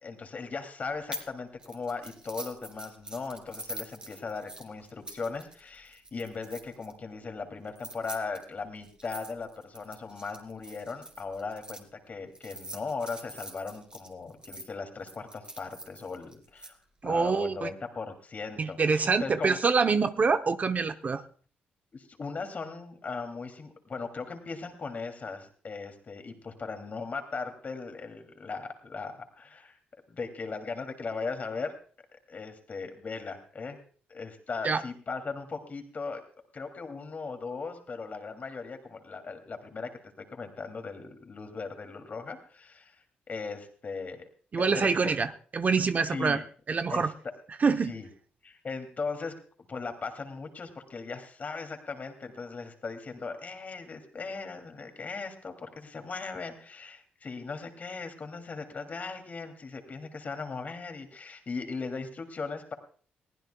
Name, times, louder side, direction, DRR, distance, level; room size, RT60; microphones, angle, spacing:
voice 1, 0.0-16.8 17.0-19.6 21.9-29.8 30.1-31.7 32.1-33.8 34.1-36.2 36.5-44.2 44.7-45.1 46.1-46.4 46.9-47.1 47.9-48.1 48.4-49.3 49.7-62.7, left 4 dB, 45° left, 6 dB, 2.8 m, -38 dB
sound 1, 1.1-1.3 1.6-6.9 7.7-11.8 12.4-14.7 15.1-16.7, equal, 25° right, 3.2 m, -44 dB
voice 2, 17.0-17.7 18.6-21.2 34.6-34.8 44.5-46.4 46.7-47.1 47.6-48.0, right 4 dB, 45° right, 9 dB, 0.8 m, -26 dB
22.0 x 15.5 x 2.3 m, 0.43 s
cardioid pair, 70°, 4 cm